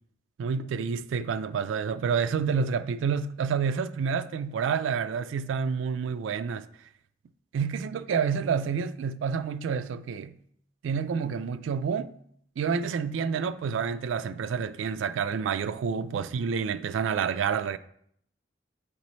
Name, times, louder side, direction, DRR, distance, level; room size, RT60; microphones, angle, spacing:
voice 1, 0.4-6.7 7.5-10.4 10.8-12.1 12.6-17.8, right 6 dB, 90° right, 0.3 m, -28 dB
7.8 x 4.0 x 3.1 m
head